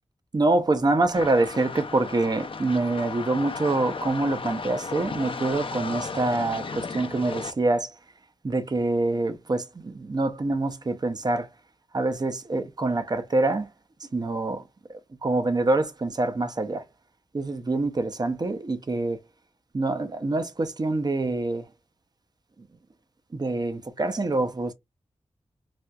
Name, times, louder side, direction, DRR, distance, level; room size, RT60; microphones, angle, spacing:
voice 1, 0.3-7.9 8.4-11.5 11.9-13.7 14.1-14.6 14.9-16.8 17.3-19.2 19.7-21.6 23.3-24.7, right 2 dB, 35° right, 0.6 m, -25 dB
sound 1, 1.1-7.5, left 4 dB, 50° left, 0.5 m, -35 dB
4.2 x 2.3 x 2.3 m
wide cardioid pair, 70°, 12 cm